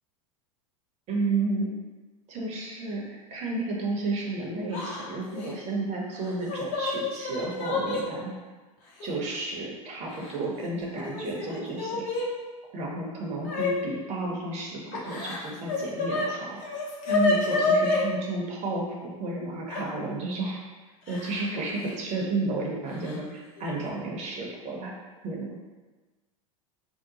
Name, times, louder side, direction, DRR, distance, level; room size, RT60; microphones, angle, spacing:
voice 1, 1.1-1.7 2.3-8.3 9.0-12.0 12.7-16.6 17.1-20.6 21.1-24.9 25.2-25.6, right 2 dB, 40° right, -1 dB, 0.8 m, -32 dB
Yell / Crying sobbing, 4.7-5.0 5.3-5.5 6.2-8.0 9.0-9.1 10.1-10.7 11.0-12.3 13.4-13.7 14.9-16.3 16.6-18.0 19.7-19.8 21.1-21.5 21.8-21.9 23.0-23.2 23.6-23.9, left 3 dB, 45° left, 0.7 m, -28 dB
2.8 x 2.0 x 3.9 m, 1.3 s
hypercardioid pair, 100°, 18 cm